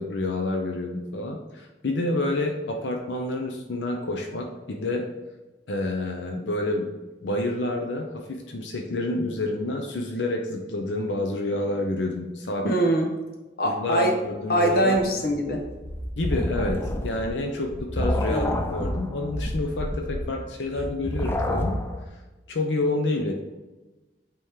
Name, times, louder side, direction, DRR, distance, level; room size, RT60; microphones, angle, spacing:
voice 1, 0.0-5.0 5.7-6.9 7.2-12.7 13.6-15.1 16.2-21.8 22.5-23.3, left 2 dB, 85° left, 2 dB, 0.7 m, -28 dB
voice 2, 12.6-13.1 13.6-14.1 14.5-15.6 18.3-18.5, right 1 dB, 55° left, 2 dB, 1.0 m, -22 dB
sound 1, 15.0-22.0, left 1 dB, 15° left, 0.4 m, -29 dB
8.5 x 3.0 x 3.6 m, 1.1 s
head